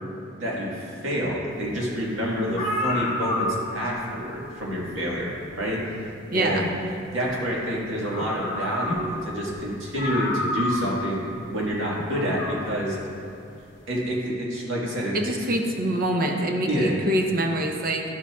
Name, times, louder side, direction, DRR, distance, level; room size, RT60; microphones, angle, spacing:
voice 1, 0.3-5.8 6.3-6.7 7.1-13.0 13.9-15.3 16.7-17.0, equal, 75° right, -4 dB, 1.6 m, -28 dB
sound 1, 2.1-2.2 2.5-3.9 5.3-5.4 7.6-7.7 8.0-9.2 9.5-9.6 10.0-10.9 12.0-12.6, left 1 dB, 40° left, 1.0 m, -29 dB
voice 2, 6.3-6.7 15.1-18.0, right 1 dB, 45° right, 3 dB, 0.7 m, -25 dB
11.5 x 7.3 x 2.3 m, 2.8 s
head